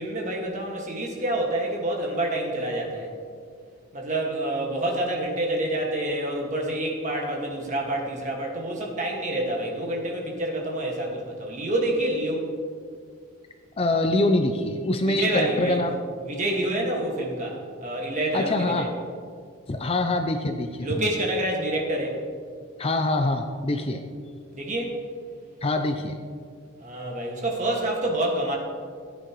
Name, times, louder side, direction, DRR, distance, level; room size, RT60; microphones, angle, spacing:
voice 1, 0.0-3.1 3.9-12.6 15.1-15.8 16.2-18.9 20.8-22.2 24.5-25.0 26.8-28.6, right 1 dB, 35° right, -1 dB, 1.8 m, -27 dB
voice 2, 13.8-16.0 18.3-18.9 19.7-21.1 22.8-24.0 25.6-26.2, left 2 dB, 25° left, 5 dB, 0.4 m, -24 dB
15.0 x 9.3 x 3.1 m, 2.2 s
head